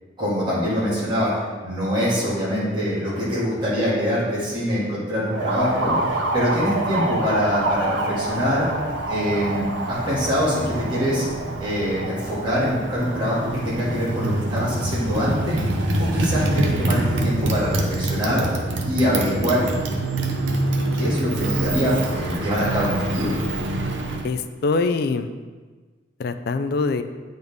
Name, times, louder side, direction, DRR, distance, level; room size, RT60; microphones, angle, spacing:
voice 1, 0.2-1.3 1.6-5.9 6.3-8.7 9.1-11.2 11.6-15.6 16.0-18.4 18.9-19.6 20.9-23.3, equal, 25° right, -10 dB, 2.1 m, -24 dB
Motorcycle, 5.3-24.3, right 1 dB, 75° right, 0.7 m, -25 dB
voice 2, 24.2-25.3 26.2-27.0, left 4 dB, 55° left, 9 dB, 0.3 m, -23 dB
8.5 x 4.0 x 3.5 m, 1.4 s
head